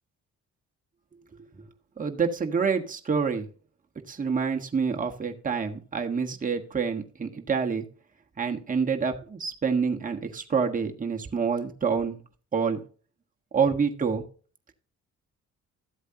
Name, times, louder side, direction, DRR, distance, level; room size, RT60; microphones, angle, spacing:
voice 1, 2.0-3.4 4.1-7.8 8.4-12.2 12.5-12.8 13.5-14.2, right 5 dB, 25° right, 3 dB, 1.5 m, -27 dB
13.5 x 8.0 x 2.9 m, 0.39 s
cardioid pair, 90°, 30 cm